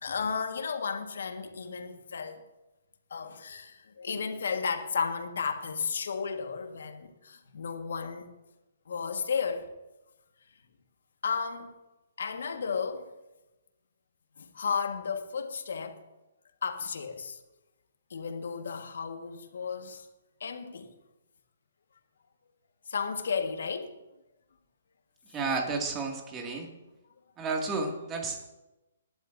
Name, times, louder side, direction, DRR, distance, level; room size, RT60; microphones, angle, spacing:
voice 1, 0.0-2.4 3.1-8.3 8.9-9.7 11.2-11.7 12.2-13.1 14.4-16.0 16.6-17.4 18.1-20.0 20.4-20.9 22.9-23.9, left 6 dB, 70° left, 6 dB, 1.6 m, -33 dB
voice 2, 25.3-26.7 27.4-28.5, right 3 dB, 20° right, 2 dB, 2.3 m, -32 dB
20.0 x 11.5 x 2.7 m, 1.0 s
hypercardioid pair, 135°, 0 cm